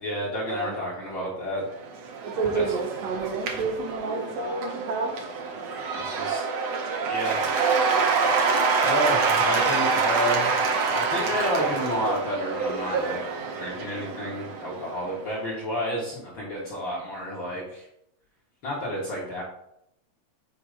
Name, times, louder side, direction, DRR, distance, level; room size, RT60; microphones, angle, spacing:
voice 1, 0.0-1.7 2.1-2.7 5.9-6.4 7.1-7.5 8.8-13.2 13.5-17.9 18.6-19.4, equal, 50° left, -6 dB, 1.5 m, -30 dB
Cheering / Applause / Crowd, 1.7-15.2, right 4 dB, 70° right, 1.6 m, -26 dB
voice 2, 2.2-5.2, right 4 dB, 90° right, 2 dB, 2.7 m, -29 dB
8.0 x 2.8 x 5.0 m, 0.77 s
omnidirectional pair, 3.9 m